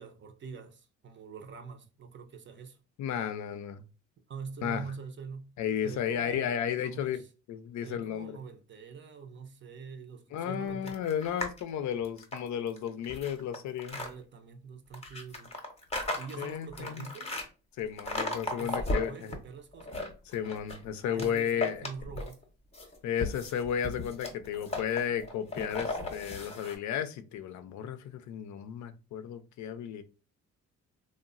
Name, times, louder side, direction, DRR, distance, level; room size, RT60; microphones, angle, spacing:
voice 1, 0.0-2.8 4.3-5.5 5.8-7.3 7.8-11.0 13.9-15.6 16.2-17.3 18.6-20.1 21.0-22.4, right 6 dB, 40° right, 0.5 m, -45 dB
voice 2, 3.0-3.8 4.6-4.8 5.6-7.2 7.5-8.4 10.3-14.0 16.4-17.1 17.8-19.3 20.3-21.9 23.0-30.0, left 9 dB, 70° left, 0.4 m, -33 dB
sound 1, 10.9-11.6 12.0-14.1 14.9-17.5 18.0-19.4 19.7-20.8 21.2-22.4 22.7-26.8, left 2 dB, 20° left, 0.7 m, -36 dB
2.9 x 2.1 x 2.4 m
cardioid pair, 90°, 30 cm